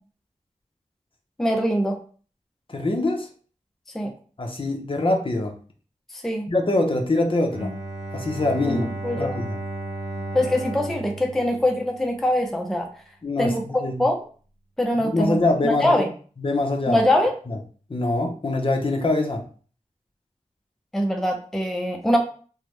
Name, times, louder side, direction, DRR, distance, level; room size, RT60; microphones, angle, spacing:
voice 1, 1.4-2.0 3.9-4.1 6.2-6.5 8.7-9.4 10.3-12.9 13.4-14.2 14.8-15.4 15.6-16.1 16.9-17.3 20.9-22.2, left 1 dB, ahead, 2 dB, 0.4 m, -23 dB
voice 2, 2.7-3.3 4.4-5.5 6.5-7.7 8.1-8.9 9.2-9.6 13.2-14.1 15.0-16.0 16.4-17.0 17.5-17.6 17.9-19.4 22.1-22.2, left 2 dB, 40° left, 2 dB, 0.6 m, -24 dB
Bowed string instrument, 7.5-12.4, right 2 dB, 60° right, 0.9 m, -34 dB
3.4 x 2.0 x 3.0 m, 0.41 s
wide cardioid pair, 75°, 13 cm